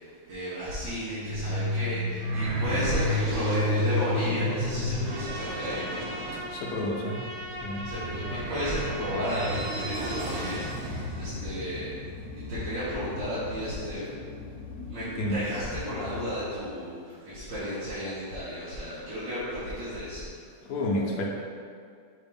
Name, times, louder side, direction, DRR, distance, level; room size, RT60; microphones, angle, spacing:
voice 1, 0.0-6.3 7.8-12.0 12.5-14.0 14.9-20.4, equal, 65° right, -12 dB, 2.1 m, -33 dB
sound 1, 1.0-11.5, equal, 90° right, 1.7 m, -31 dB
Trumpet, 5.0-10.8, equal, 45° right, 1.0 m, -39 dB
voice 2, 6.5-7.3 7.6-7.9 15.2-15.4 20.6-21.2, left 1 dB, 55° left, -3 dB, 1.1 m, -30 dB
sound 2, 10.3-16.9, left 4 dB, 80° left, 0.8 m, -41 dB
6.4 x 3.0 x 5.3 m, 2.2 s
omnidirectional pair, 2.2 m